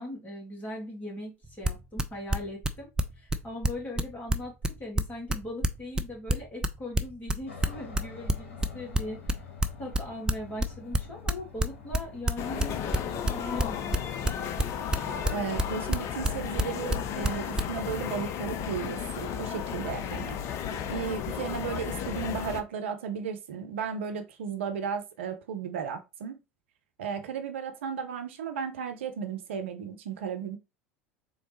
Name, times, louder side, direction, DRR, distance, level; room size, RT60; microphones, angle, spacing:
voice 1, 0.0-2.9 3.2-9.4 9.8-13.9 14.2-14.3, left 1 dB, 25° left, 2.4 m, -40 dB
sound 1, 1.4-17.7, right 1 dB, 10° right, 0.4 m, -26 dB
Aircraft, 7.5-14.3, left 7 dB, 65° left, 1.5 m, -47 dB
sound 2, 12.4-22.6, left 8 dB, 45° left, 0.5 m, -34 dB
voice 2, 15.3-20.4 20.7-26.4 27.0-30.6, right 7 dB, 65° right, 0.6 m, -35 dB
3.9 x 3.1 x 3.1 m
figure-of-eight pair, 75°, 7 cm